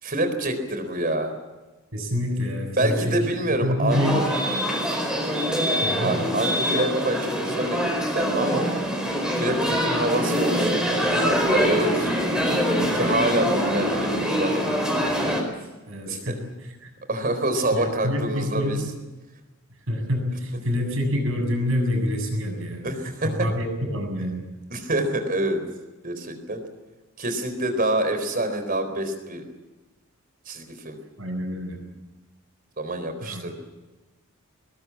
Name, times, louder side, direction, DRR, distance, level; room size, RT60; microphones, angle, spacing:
voice 1, 0.0-1.3 2.8-4.3 5.6-8.7 9.4-10.9 11.1-12.2 12.9-14.8 16.1-16.3 17.1-18.8 22.8-23.5 24.7-25.6 26.0-26.6 27.2-29.4 30.5-31.0 32.8-33.5, right 1 dB, 40° right, 7 dB, 4.2 m, -26 dB
voice 2, 1.9-4.2 5.8-6.2 15.9-16.9 17.7-18.9 19.9-22.9 23.2-24.5 31.2-31.8 33.2-33.5, left 1 dB, 65° right, 4 dB, 7.4 m, -27 dB
sound 1, 3.9-15.4, equal, 5° right, 4.6 m, -24 dB
20.5 x 20.5 x 8.7 m, 1.2 s
head